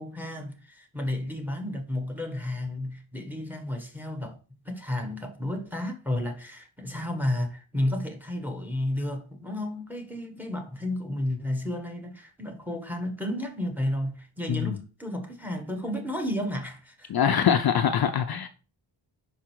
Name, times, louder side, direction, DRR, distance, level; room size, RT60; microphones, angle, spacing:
voice 1, 0.0-4.4 4.6-17.1, left 1 dB, 5° right, 1.1 m, -32 dB
voice 2, 17.1-18.5, left 8 dB, 50° left, 0.5 m, -23 dB
5.4 x 4.9 x 4.4 m
wide cardioid pair, 140°, 47 cm